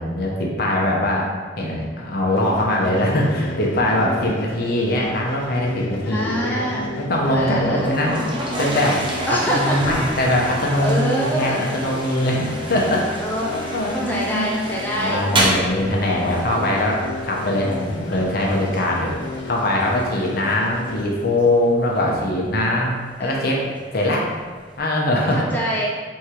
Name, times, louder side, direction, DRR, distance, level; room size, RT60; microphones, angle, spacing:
voice 1, 0.0-6.6 7.0-8.1 8.6-9.0 9.3-14.5 14.9-19.1 19.5-23.7 23.9-24.3 24.8-25.4, left 1 dB, 55° left, -2 dB, 0.8 m, -22 dB
sound 1, 2.4-21.0, left 3 dB, 80° left, 0.3 m, -33 dB
voice 2, 6.1-6.9 7.2-7.9 9.3-9.9 10.8-11.6 13.2-15.3 20.1-20.5 23.2-23.3 25.3-25.9, equal, 10° left, -4 dB, 0.5 m, -25 dB
Toilet flush, 7.8-24.8, right 1 dB, 30° right, 0.7 m, -31 dB
3.6 x 3.2 x 4.4 m, 1.4 s
head